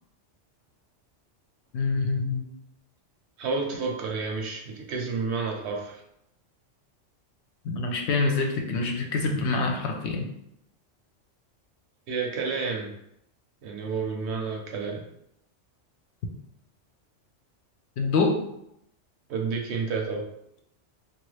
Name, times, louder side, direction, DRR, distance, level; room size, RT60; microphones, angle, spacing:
voice 1, 1.7-2.4 7.6-10.3 18.0-18.4, left 3 dB, 70° left, 2 dB, 0.8 m, -26 dB
voice 2, 3.4-6.0 12.1-12.9 13.6-15.0 19.3-20.3, right 4 dB, 70° right, 0 dB, 0.9 m, -30 dB
3.0 x 2.3 x 3.1 m, 0.78 s
omnidirectional pair, 1.2 m